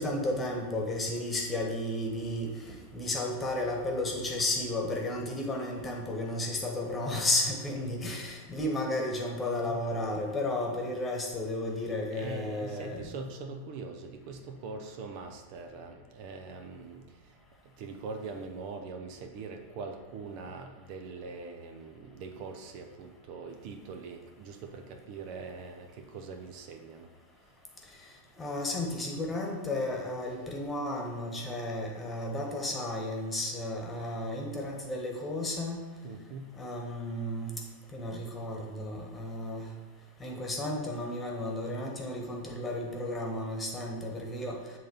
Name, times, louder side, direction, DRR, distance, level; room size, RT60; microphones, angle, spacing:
voice 1, 0.0-13.1 28.4-35.8 36.6-37.5 37.9-39.7 40.2-44.6, left 1 dB, 15° left, 0 dB, 1.4 m, -33 dB
voice 2, 12.1-17.0 17.8-27.1 36.0-36.5, right 4 dB, 45° right, 5 dB, 0.7 m, -42 dB
7.8 x 3.8 x 5.5 m, 1.2 s
figure-of-eight pair, 90°, 0 cm